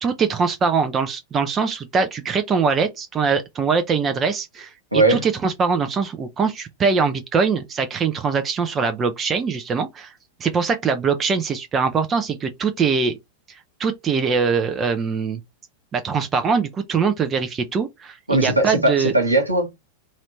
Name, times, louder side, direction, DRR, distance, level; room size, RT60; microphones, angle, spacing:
voice 1, 0.0-10.1 10.4-13.1 13.8-15.4 15.9-19.1, right 5 dB, 25° right, 0.6 m, -22 dB
voice 2, 4.9-5.2 18.3-19.7, right 1 dB, 85° right, 1.4 m, -19 dB
4.2 x 2.6 x 3.1 m
figure-of-eight pair, 90°, 0 cm